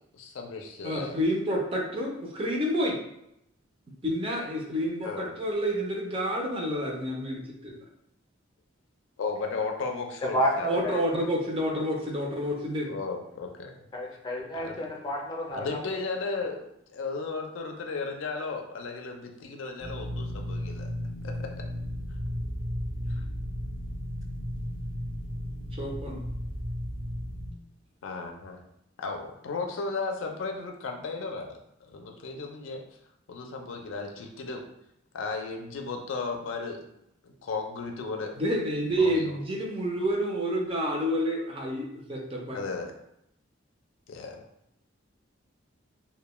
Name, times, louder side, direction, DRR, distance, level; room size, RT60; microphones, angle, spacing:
voice 1, 0.1-1.1 5.0-5.3 9.2-10.8 12.9-13.7 14.5-14.8 15.5-20.9 21.2-21.3 28.0-28.6 29.0-31.5 31.8-32.8 33.3-34.6 35.1-36.9 37.2-38.3 39.0-39.4 42.5-42.9 44.1-44.5, left 4 dB, 75° left, 3 dB, 0.4 m, -35 dB
voice 2, 0.8-3.0 4.0-7.8 10.7-13.0 25.8-26.2 38.4-42.6, equal, 30° right, -1 dB, 0.5 m, -29 dB
voice 3, 10.3-11.0 13.9-15.8, equal, 20° left, -2 dB, 0.5 m, -30 dB
sound 1, 19.8-27.5, equal, 75° right, 0.8 m, -34 dB
2.2 x 2.1 x 3.0 m, 0.79 s
head